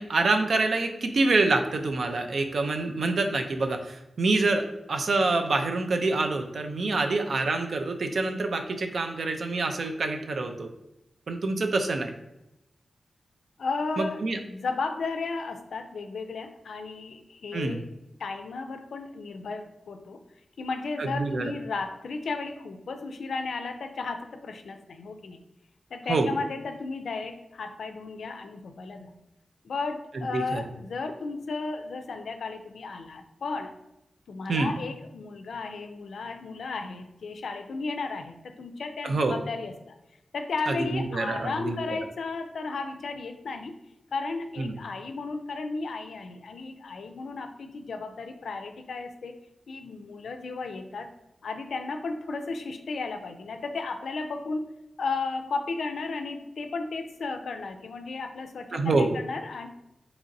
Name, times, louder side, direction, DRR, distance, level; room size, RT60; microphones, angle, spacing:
voice 1, 0.0-10.7 11.3-12.1 14.0-14.4 17.5-17.8 21.0-21.5 26.1-26.3 30.1-30.6 34.5-34.7 39.0-39.4 40.7-41.8 44.6-44.7 58.7-59.2, right 3 dB, 75° right, 5 dB, 0.4 m, -26 dB
voice 2, 13.6-17.8 18.2-20.2 20.6-25.4 25.9-29.1 29.6-33.7 34.3-39.9 40.3-43.7 44.1-49.3 49.7-51.1 51.4-54.7 55.0-59.7, left 4 dB, 90° left, 7 dB, 0.3 m, -34 dB
4.0 x 2.9 x 2.5 m, 0.89 s
cardioid pair, 70°, 0 cm